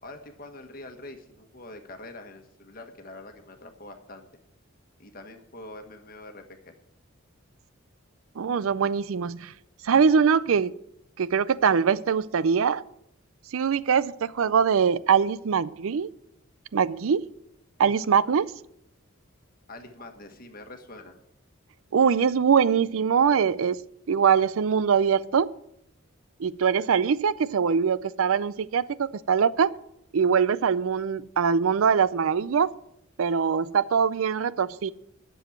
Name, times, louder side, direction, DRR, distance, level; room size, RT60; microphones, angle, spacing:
voice 1, 0.0-4.3 5.0-6.7 19.7-21.2, left 2 dB, 45° left, 1.4 m, -44 dB
voice 2, 8.4-9.5 9.8-10.7 11.2-12.8 13.5-16.1 16.7-17.2 17.8-18.5 21.9-23.8 24.1-25.5 26.4-29.7 30.1-32.7 33.2-34.9, right 6 dB, 80° right, 0.4 m, -22 dB
11.5 x 7.1 x 7.3 m
head